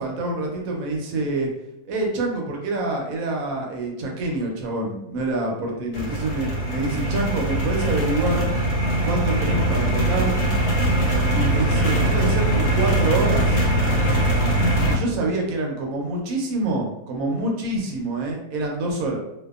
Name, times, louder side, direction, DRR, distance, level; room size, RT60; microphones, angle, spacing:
voice 1, 0.0-1.5 1.8-8.5 9.0-10.3 11.3-13.6 14.8-19.2, right 2 dB, 70° right, 0 dB, 1.0 m, -26 dB
sound 1, 5.9-14.9, right 1 dB, 70° left, 1.1 m, -21 dB
2.7 x 2.2 x 2.3 m, 0.88 s
omnidirectional pair, 1.6 m